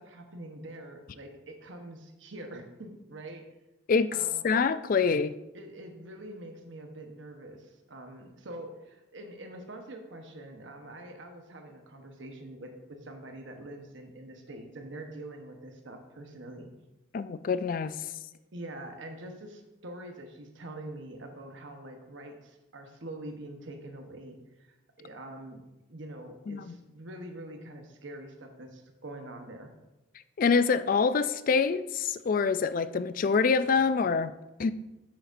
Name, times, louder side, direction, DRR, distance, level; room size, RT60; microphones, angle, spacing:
voice 1, 0.0-3.4 4.1-4.4 5.5-16.7 18.5-25.6 25.9-29.7, right 1 dB, 75° right, 4 dB, 1.0 m, -44 dB
voice 2, 4.4-5.3 17.1-18.0 26.5-26.7 30.4-34.3 34.6-34.7, left 5 dB, 45° left, 14 dB, 0.3 m, -25 dB
10.0 x 7.7 x 2.6 m, 0.98 s
head